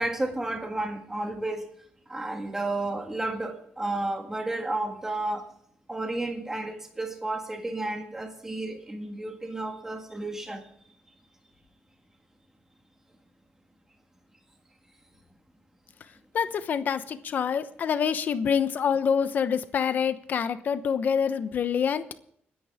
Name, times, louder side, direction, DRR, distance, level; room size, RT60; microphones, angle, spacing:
voice 1, 0.0-1.7 2.1-5.5 5.9-10.6, right 2 dB, 10° right, 3 dB, 1.8 m, -32 dB
voice 2, 16.3-22.0, left 7 dB, 50° left, 11 dB, 1.0 m, -26 dB
29.5 x 10.0 x 3.6 m, 0.66 s
wide cardioid pair, 180°, 4 cm